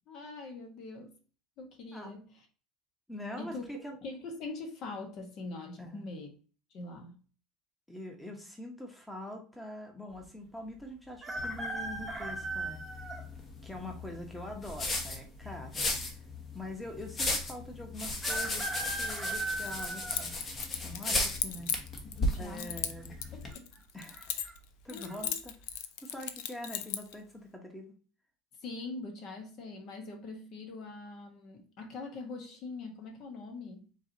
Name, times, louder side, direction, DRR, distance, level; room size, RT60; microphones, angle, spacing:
voice 1, 0.1-1.2 1.6-2.2 3.4-3.6 4.0-6.3 6.7-7.2 22.2-22.8 23.3-23.7 24.9-25.4 28.6-33.9, left 3 dB, 55° left, 1.2 m, -43 dB
voice 2, 3.1-4.0 5.8-6.1 7.9-13.1 13.6-16.0 16.5-20.4 20.8-21.7 22.4-23.2 23.9-24.4 24.8-25.5 26.0-27.9, left 1 dB, 5° left, 1.0 m, -44 dB
sound 1, 11.2-13.2 13.9-14.0 15.1-15.7 16.0-16.1 16.3-16.4 18.2-20.8 21.4-21.8 22.9-23.3 23.5-23.6 24.1-24.5 25.0-25.2, right 2 dB, 15° right, 0.8 m, -37 dB
sound 2, 11.4-23.5, left 2 dB, 35° left, 1.1 m, -36 dB
Keys jangling, 19.5-22.2 22.6-24.6 24.9-27.1, left 10 dB, 75° left, 0.5 m, -37 dB
4.6 x 3.1 x 2.7 m
supercardioid pair, 95°, 0 cm